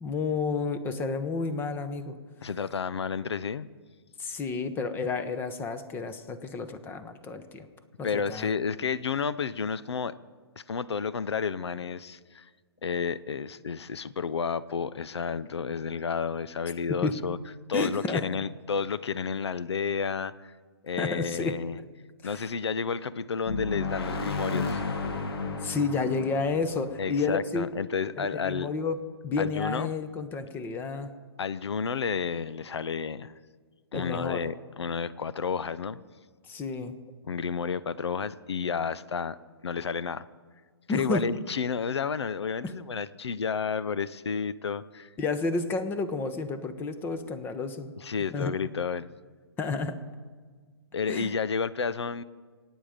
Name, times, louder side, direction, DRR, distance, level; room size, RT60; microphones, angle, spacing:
voice 1, 0.0-2.2 4.2-7.7 8.0-8.5 16.9-17.2 17.7-18.2 21.0-21.6 22.2-22.5 25.6-27.7 28.2-29.0 29.2-31.1 33.9-34.4 36.5-37.0 40.9-41.3 42.6-42.7 45.2-47.9 48.3-48.5 49.6-50.0 51.1-51.3, left 4 dB, 15° left, 10 dB, 1.0 m, -31 dB
voice 2, 2.4-3.7 8.0-10.1 10.7-12.5 12.8-17.4 17.7-20.5 20.8-21.8 22.2-24.8 27.0-28.7 29.4-29.9 31.4-33.3 33.9-36.0 37.2-39.4 39.6-40.3 40.9-45.1 48.0-49.1 50.9-52.2, left 6 dB, 80° left, 16 dB, 0.7 m, -31 dB
sound 1, 23.4-28.1, left 4 dB, 65° left, 1.9 m, -33 dB
25.5 x 9.3 x 5.1 m, 1.5 s
hypercardioid pair, 145°, 14 cm